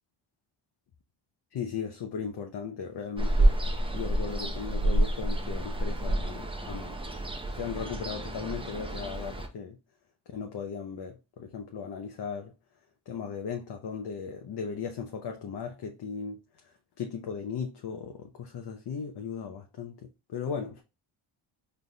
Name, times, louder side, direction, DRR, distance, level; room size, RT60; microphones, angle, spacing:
voice 1, 1.5-3.5 3.9-7.0 7.5-9.8 10.3-12.5 13.1-16.4 17.0-20.8, left 6 dB, 55° left, 0.7 m, -37 dB
Ocean, 3.2-9.5, right 1 dB, 10° right, 0.6 m, -28 dB
4.0 x 3.4 x 2.3 m
cardioid pair, 105°, 46 cm